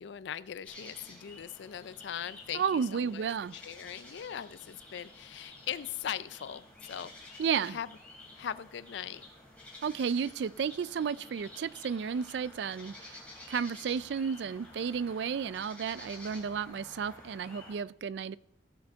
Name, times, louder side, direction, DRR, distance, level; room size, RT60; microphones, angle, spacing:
voice 1, 0.0-3.2 3.5-8.0 8.4-9.2, left 9 dB, 70° left, 17 dB, 0.4 m, -40 dB
sound 1, 0.7-17.7, left 2 dB, 5° left, 2.9 m, -51 dB
voice 2, 2.5-3.5 7.4-7.8 9.8-13.2 13.5-18.4, right 6 dB, 70° right, 19 dB, 0.3 m, -32 dB
16.0 x 6.6 x 3.5 m, 0.82 s
head